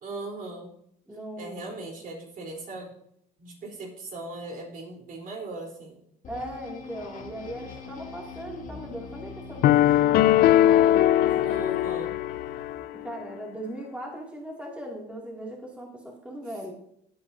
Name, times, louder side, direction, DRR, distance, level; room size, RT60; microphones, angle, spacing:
voice 1, 0.0-0.7 1.4-2.9 3.4-6.0 11.4-12.1, right 2 dB, 55° right, 0 dB, 3.9 m, -38 dB
voice 2, 1.1-1.7 6.3-12.0 12.9-16.7, equal, 5° right, -2 dB, 2.5 m, -39 dB
sound 1, 6.2-12.8, left 5 dB, 50° left, 2.3 m, -43 dB
sound 2, 9.6-12.9, left 12 dB, 70° left, 0.5 m, -20 dB
16.0 x 8.7 x 2.7 m, 0.71 s
cardioid pair, 110°, 17 cm